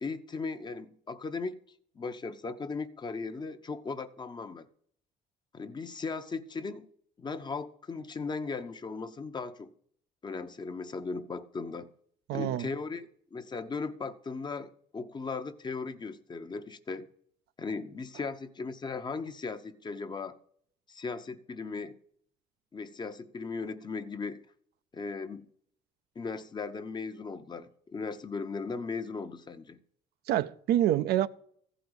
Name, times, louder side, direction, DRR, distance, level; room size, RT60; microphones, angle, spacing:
voice 1, 0.0-1.6 1.9-4.7 5.5-6.9 7.2-9.7 10.2-11.9 12.3-17.1 17.6-20.4 20.9-22.0 22.7-24.4 24.9-25.5 26.2-29.8, left 4 dB, 25° left, 0.7 m, -37 dB
voice 2, 12.3-12.7 30.3-31.3, right 12 dB, 70° right, 0.5 m, -26 dB
14.5 x 5.1 x 8.0 m
cardioid pair, 110°, 17 cm